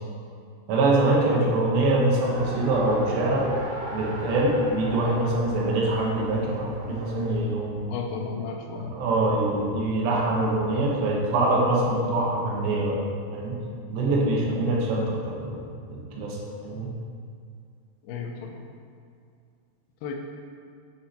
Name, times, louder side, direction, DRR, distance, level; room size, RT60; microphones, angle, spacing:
voice 1, 0.7-3.5 3.9-7.9 8.8-13.0 13.3-13.6 13.9-15.6 15.9-16.9, right 2 dB, 90° right, -3 dB, 3.3 m, -24 dB
Race car auto racing, 2.2-7.4, right 1 dB, 70° right, 3.1 m, -37 dB
voice 2, 7.9-8.9 18.1-18.6 20.0-20.1, left 5 dB, 80° left, 2 dB, 2.4 m, -33 dB
9.4 x 4.2 x 4.2 m, 2.3 s
omnidirectional pair, 4.8 m